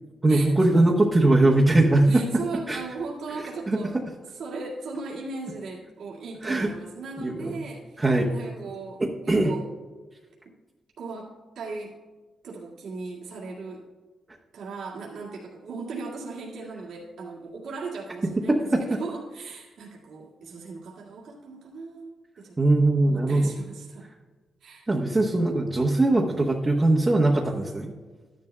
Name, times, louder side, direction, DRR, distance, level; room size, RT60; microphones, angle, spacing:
voice 1, 0.2-2.4 2.7-2.8 3.7-4.0 6.4-6.7 7.2-7.5 8.0-8.3 9.0-9.5 18.5-19.0 22.6-23.5 24.9-27.9, right 2 dB, 20° right, -2 dB, 0.9 m, -21 dB
voice 2, 2.1-4.0 4.2-8.0 8.3-9.6 11.0-11.9 12.4-13.8 14.5-24.1 24.6-24.9 25.9-26.1, right 4 dB, 80° right, -5 dB, 2.0 m, -38 dB
13.0 x 10.5 x 2.2 m, 1.3 s
cardioid pair, 125°, 0 cm